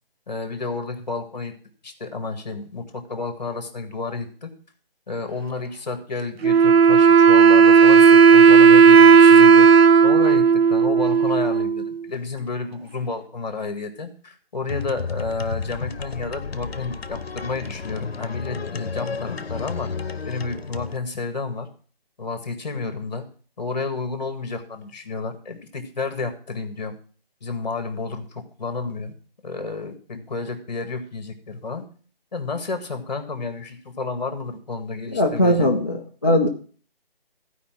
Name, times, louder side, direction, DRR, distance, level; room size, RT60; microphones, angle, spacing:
voice 1, 0.3-1.5 1.8-4.5 5.1-9.7 10.0-19.9 20.2-21.7 22.2-23.2 23.6-27.0 27.4-29.1 29.4-31.8 32.3-35.8, left 3 dB, 45° left, 7 dB, 1.9 m, -31 dB
Wind instrument woodwind instrument, 6.4-11.9, right 6 dB, 85° right, 0.5 m, -12 dB
sound 1, 14.7-21.0, left 5 dB, 80° left, 0.9 m, -32 dB
voice 2, 35.1-36.5, left 1 dB, 20° left, -4 dB, 0.7 m, -19 dB
15.0 x 5.1 x 5.9 m, 0.42 s
figure-of-eight pair, 170°, 30 cm